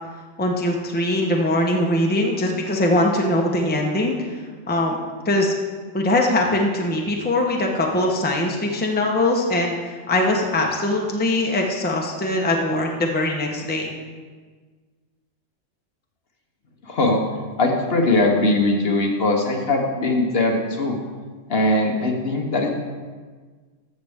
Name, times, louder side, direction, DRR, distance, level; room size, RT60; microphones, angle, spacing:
voice 1, 0.4-4.4 4.7-5.0 5.2-5.5 5.9-13.9, left 1 dB, 10° left, 0 dB, 0.8 m, -21 dB
voice 2, 16.8-17.2 17.6-21.0 21.5-22.7, left 2 dB, 55° left, 1 dB, 1.2 m, -20 dB
14.0 x 6.7 x 3.6 m, 1.5 s
omnidirectional pair, 1.3 m